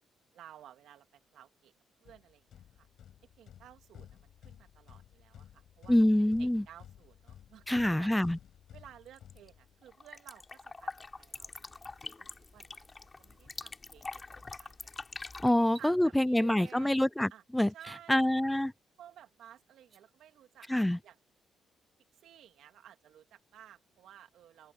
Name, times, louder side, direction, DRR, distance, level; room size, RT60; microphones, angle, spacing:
voice 1, 0.3-1.7 2.0-2.9 3.4-6.1 6.4-8.1 8.7-14.9 15.4-17.0 17.3-17.4 17.7-18.3 19.0-21.2 22.2-24.7, right 11 dB, 75° right, 2.9 m, -55 dB
sound 1, 2.0-10.0, left 10 dB, 70° left, 5.3 m, -55 dB
voice 2, 5.9-6.6 7.7-8.4 15.4-17.7 18.1-18.7 20.7-21.0, left 1 dB, 5° left, 0.4 m, -26 dB
sound 2, 9.1-9.5 9.8-15.5, left 3 dB, 25° left, 3.7 m, -45 dB
sound 3, 15.6-15.9 17.7-17.9 19.7-20.0, right 5 dB, 40° right, 3.5 m, -55 dB
cardioid pair, 90°, 0 cm